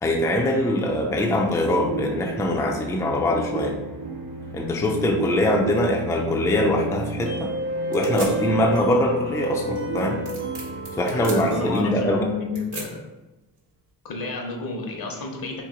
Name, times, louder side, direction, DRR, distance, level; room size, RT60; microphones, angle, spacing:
voice 1, 0.0-3.8 4.5-7.5 7.9-10.2 11.0-12.3, left 1 dB, 10° left, 0 dB, 0.4 m, -23 dB
sound 1, 1.1-11.7, right 2 dB, 55° right, 0.9 m, -31 dB
sound 2, 5.8-13.9, right 3 dB, 85° right, 1.2 m, -43 dB
voice 2, 11.1-13.0 14.0-15.6, left 3 dB, 60° left, 1 dB, 0.9 m, -31 dB
3.1 x 2.6 x 3.7 m, 1.1 s
cardioid pair, 80°, 40 cm